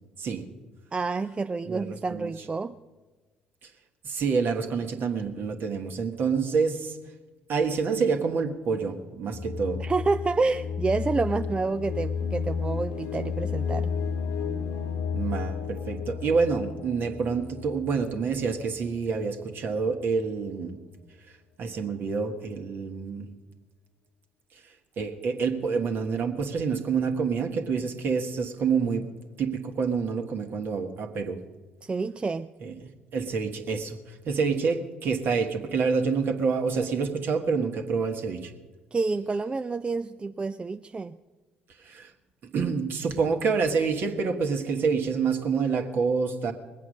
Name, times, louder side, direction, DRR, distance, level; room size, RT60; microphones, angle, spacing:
voice 1, 0.9-2.8 9.8-13.9 31.8-32.5 38.9-41.2, right 3 dB, 25° right, 10 dB, 0.4 m, -28 dB
voice 2, 1.7-2.3 3.6-3.7 4.0-7.0 7.5-9.8 15.1-20.8 21.6-23.3 25.0-29.1 29.4-31.4 32.6-32.7 33.1-38.5 41.8-42.1 42.5-46.5, right 5 dB, 50° right, 5 dB, 1.6 m, -27 dB
sound 1, 9.3-19.1, left 6 dB, 65° left, 0.8 m, -32 dB
20.5 x 8.5 x 6.4 m, 1.3 s
hypercardioid pair, 50°, 4 cm